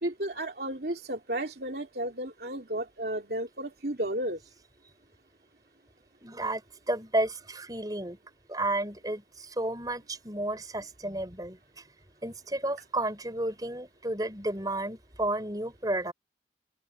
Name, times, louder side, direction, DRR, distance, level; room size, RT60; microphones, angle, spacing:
voice 1, 0.0-4.4, right 1 dB, 60° right, 3.2 m, -33 dB
voice 2, 6.2-6.6 6.9-8.2 8.5-11.6 12.2-16.1, right 1 dB, 20° right, 5.4 m, -32 dB
open air
head